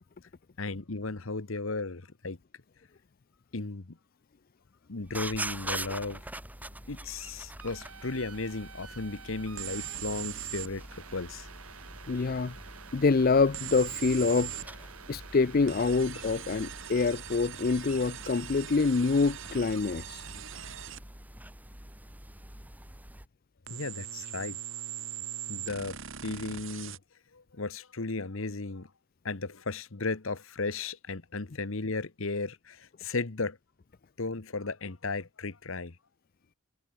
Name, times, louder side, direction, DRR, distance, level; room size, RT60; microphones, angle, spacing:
voice 1, 0.6-2.4 3.5-4.0 4.9-6.2 6.9-10.8 11.1-11.5 23.7-24.6 25.5-26.0 26.2-27.0 27.3-28.9 29.2-33.6 34.2-36.0, left 3 dB, 70° left, 1.2 m, -35 dB
sound 1, 5.0-23.3, right 1 dB, 10° right, 2.0 m, -44 dB
sound 2, 7.6-20.9, right 6 dB, 85° right, 4.2 m, -50 dB
sound 3, 9.6-10.7 13.5-14.7 15.7-21.0 23.7-27.0, right 10 dB, 60° right, 2.6 m, -41 dB
voice 2, 12.1-12.5 12.9-14.7 15.1-20.2, left 4 dB, 45° left, 0.5 m, -26 dB
head